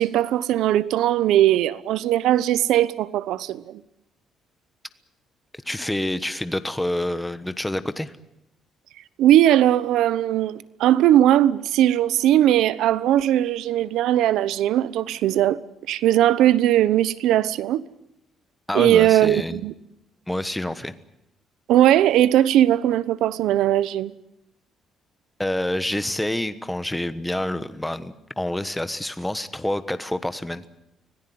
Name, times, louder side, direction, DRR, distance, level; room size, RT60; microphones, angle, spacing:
voice 1, 0.0-3.8 9.2-15.6 15.9-17.8 18.7-19.7 21.7-24.1, right 12 dB, 80° right, 1.0 m, -19 dB
voice 2, 5.6-8.1 18.7-19.6 20.3-20.9 25.4-30.7, left 1 dB, 5° left, 1.2 m, -27 dB
25.5 x 17.5 x 9.5 m
cardioid pair, 145°, 0 cm